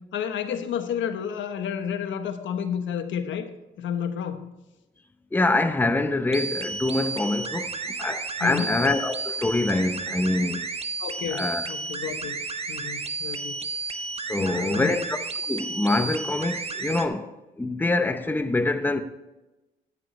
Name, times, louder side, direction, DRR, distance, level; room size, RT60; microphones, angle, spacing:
voice 1, 0.1-3.5 3.8-4.4 8.4-8.7 11.0-12.4 12.7-13.6 14.4-14.9, left 8 dB, 75° left, 1.2 m, -31 dB
voice 2, 5.3-10.7 11.3-11.7 14.3-15.2 15.5-17.3 17.6-19.0, left 2 dB, 10° left, 0.8 m, -25 dB
sound 1, 6.3-17.1, right 4 dB, 30° right, 0.9 m, -32 dB
13.5 x 9.6 x 3.2 m
cardioid pair, 90°, 20 cm